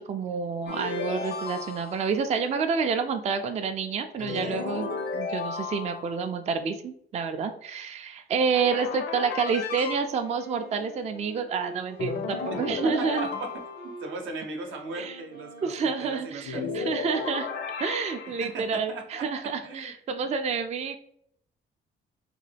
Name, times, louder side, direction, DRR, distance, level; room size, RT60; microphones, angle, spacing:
voice 1, 0.0-13.3 14.9-15.2 15.6-17.5 17.8-21.0, right 5 dB, 35° right, 7 dB, 0.4 m, -29 dB
sound 1, 0.7-2.2 4.2-6.3 8.5-10.0 12.0-14.1 16.4-18.6, left 4 dB, 60° left, 0.6 m, -34 dB
Wind instrument woodwind instrument, 10.0-16.7, right 1 dB, 75° left, 0.9 m, -46 dB
voice 2, 12.5-13.5 13.8-17.1 18.4-19.3 19.6-19.9, right 3 dB, 80° right, 3 dB, 0.7 m, -37 dB
3.7 x 2.2 x 3.3 m, 0.66 s
cardioid pair, 90°, 20 cm